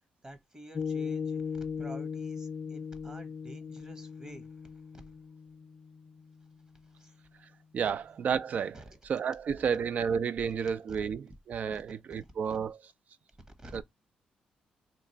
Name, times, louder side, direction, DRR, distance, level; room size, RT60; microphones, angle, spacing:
voice 1, 0.2-4.5 4.9-5.0 7.0-7.2 8.7-8.8 12.2-12.3 13.6-13.8, right 1 dB, 25° right, 1.0 m, -49 dB
Piano, 0.8-7.4, left 6 dB, 50° left, 0.5 m, -39 dB
voice 2, 7.7-12.8 13.7-13.8, right 7 dB, 55° right, 0.3 m, -31 dB
2.9 x 2.5 x 4.2 m
supercardioid pair, 60°, 3 cm